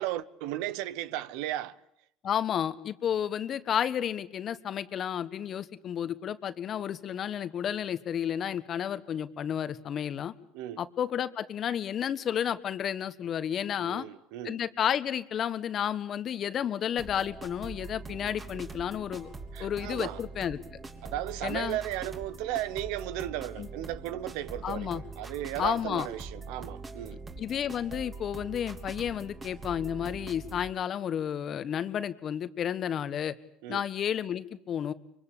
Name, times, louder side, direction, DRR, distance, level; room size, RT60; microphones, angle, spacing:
voice 1, 0.0-1.8 10.5-10.8 13.8-14.6 19.5-20.2 21.0-27.2 33.6-33.8, right 13 dB, 75° right, 1.0 m, -35 dB
voice 2, 2.2-10.3 10.8-14.1 14.4-19.3 19.6-20.6 21.4-21.8 23.6-23.7 24.6-25.0 25.6-26.1 27.4-33.3 33.7-34.9, left 9 dB, 45° left, 1.4 m, -31 dB
sound 1, 17.0-30.7, right 3 dB, 25° right, 3.4 m, -43 dB
24.0 x 24.0 x 8.6 m
supercardioid pair, 90°, 0 cm